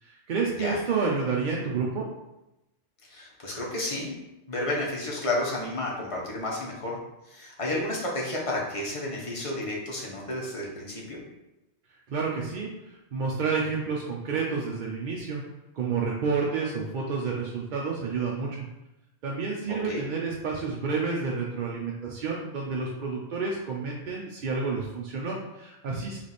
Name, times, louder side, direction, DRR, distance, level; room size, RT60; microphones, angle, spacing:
voice 1, 0.0-2.1 11.9-15.4 15.7-18.6 19.2-26.2, right 4 dB, 55° right, -3 dB, 0.6 m, -30 dB
voice 2, 3.0-4.1 4.5-7.0 7.3-11.2 19.9-20.0, left 1 dB, 30° left, -4 dB, 1.0 m, -31 dB
3.2 x 3.1 x 4.0 m, 0.94 s
omnidirectional pair, 1.2 m